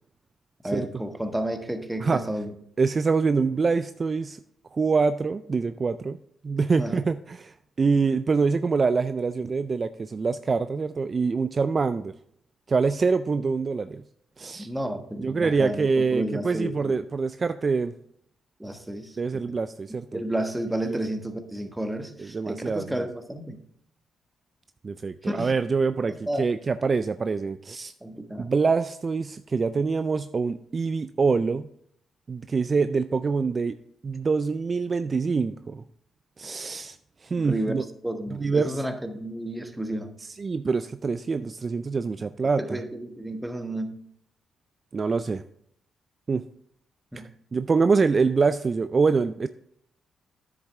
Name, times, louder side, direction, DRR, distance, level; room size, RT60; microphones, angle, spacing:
voice 1, 0.6-2.5 6.8-7.0 14.6-17.0 18.6-19.4 20.1-23.6 25.2-25.5 26.1-26.5 28.0-28.5 37.4-40.1 42.6-44.0 47.1-47.3, right 1 dB, 10° right, 6 dB, 1.2 m, -31 dB
voice 2, 2.8-4.4 4.7-6.2 6.4-12.1 12.7-14.0 14.4-14.7 15.2-17.9 19.2-20.2 20.9-21.0 22.2-23.1 24.8-27.9 28.4-31.7 32.3-33.7 34.0-35.8 36.4-37.0 37.2-37.8 38.3-38.8 40.2-42.8 44.9-45.4 46.3-46.4 47.1-49.5, right 4 dB, 40° right, 11 dB, 0.3 m, -25 dB
9.4 x 7.3 x 3.4 m, 0.68 s
cardioid pair, 75°, 0 cm